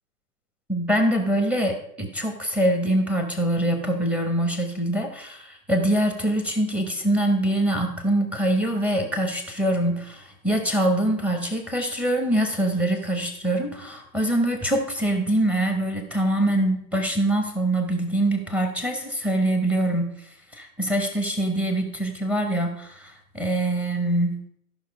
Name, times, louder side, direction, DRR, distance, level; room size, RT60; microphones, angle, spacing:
voice 1, 0.7-20.1 20.5-24.4, right 1 dB, 5° right, 5 dB, 1.2 m, -24 dB
13.5 x 5.8 x 4.8 m, 0.71 s
hypercardioid pair, 125°, 50 cm